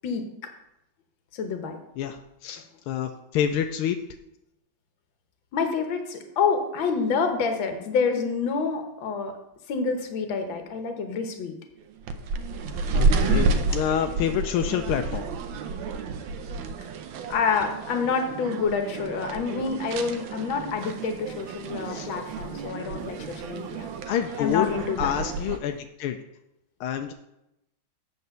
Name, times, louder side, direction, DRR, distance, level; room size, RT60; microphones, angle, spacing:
voice 1, 1.3-1.8 5.5-9.3 9.7-11.6 17.3-23.9 24.4-25.1, left 5 dB, 70° left, 6 dB, 1.8 m, -27 dB
voice 2, 2.4-4.0 12.9-15.2 21.9-22.1 24.1-24.7 25.0-26.2 26.8-27.1, left 9 dB, 90° left, 6 dB, 1.5 m, -27 dB
sound 1, 12.0-25.6, right 3 dB, 75° right, 1.4 m, -30 dB
8.3 x 4.4 x 6.8 m, 0.85 s
omnidirectional pair, 2.3 m